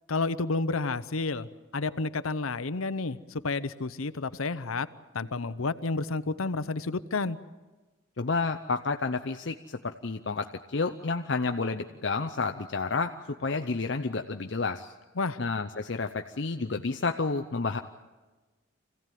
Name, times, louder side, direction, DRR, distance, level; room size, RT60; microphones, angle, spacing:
voice 1, 0.1-4.9 5.1-7.4 15.2-15.4, left 3 dB, 85° left, 14 dB, 0.8 m, -30 dB
voice 2, 8.2-13.1 13.4-14.9 15.4-17.8, left 4 dB, 60° left, 6 dB, 0.7 m, -30 dB
26.0 x 16.5 x 9.2 m, 1.3 s
head